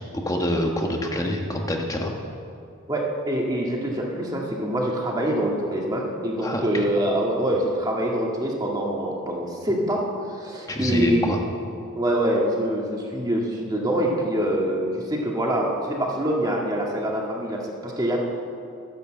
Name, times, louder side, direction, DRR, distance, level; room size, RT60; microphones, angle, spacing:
voice 1, 0.0-2.1 6.4-6.8 10.7-11.4, left 1 dB, 15° left, 2 dB, 1.3 m, -26 dB
voice 2, 2.9-11.3 12.0-18.2, right 1 dB, 20° right, -2 dB, 2.0 m, -25 dB
13.0 x 11.0 x 7.7 m, 2.5 s
head